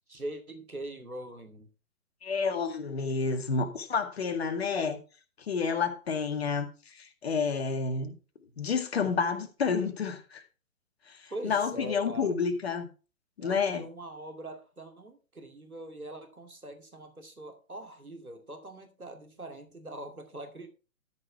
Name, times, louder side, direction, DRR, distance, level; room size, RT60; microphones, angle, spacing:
voice 1, 0.1-1.7 11.3-12.3 13.4-20.7, right 1 dB, 80° right, 2.7 m, -42 dB
voice 2, 2.2-5.0 5.5-8.2 8.6-10.4 11.1-12.9 13.4-13.8, left 5 dB, 45° left, 2.1 m, -30 dB
13.0 x 6.6 x 4.6 m
figure-of-eight pair, 130°, 42 cm